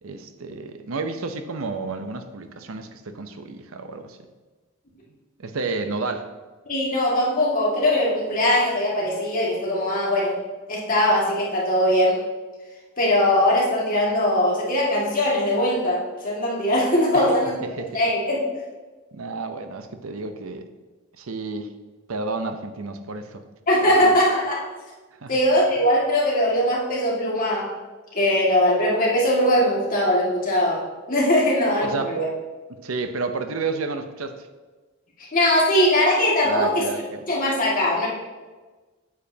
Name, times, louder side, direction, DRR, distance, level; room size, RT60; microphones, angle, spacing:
voice 1, 0.0-4.2 5.4-6.3 17.1-17.3 17.6-18.0 19.1-20.7 21.2-21.7 22.1-23.4 24.0-24.1 25.2-25.3 31.8-32.2 32.7-34.4 36.4-37.2, right 3 dB, 90° right, 8 dB, 0.7 m, -31 dB
voice 2, 6.7-10.4 10.7-12.2 13.0-17.6 17.9-18.4 23.7-24.6 25.3-27.7 28.1-32.3 35.3-36.9 37.3-38.1, left 1 dB, 45° left, -5 dB, 2.0 m, -21 dB
8.5 x 7.3 x 2.8 m, 1.3 s
head